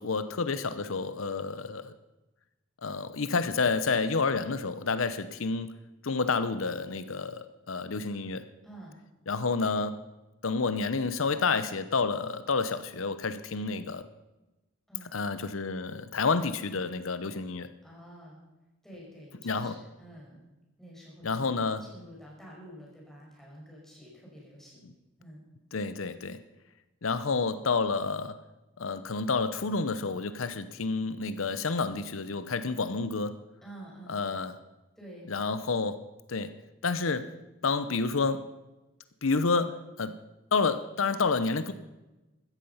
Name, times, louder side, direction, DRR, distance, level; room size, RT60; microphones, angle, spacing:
voice 1, 0.0-1.9 2.8-5.7 6.0-8.5 9.3-10.0 10.4-14.0 15.1-17.7 19.4-19.8 21.2-21.8 25.7-26.4 27.0-28.4 28.8-33.3 34.1-34.6 35.3-36.0 36.3-36.5 36.8-37.3 37.6-38.4 39.2-40.2 40.5-41.7, left 4 dB, 85° left, 12 dB, 0.8 m, -29 dB
voice 2, 8.6-9.0 14.9-15.1 17.8-18.4 18.8-20.5 20.8-24.9 25.2-25.4 33.6-34.1 35.0-35.3, right 1 dB, ahead, -4 dB, 5.8 m, -49 dB
15.5 x 13.5 x 5.6 m, 1.0 s
head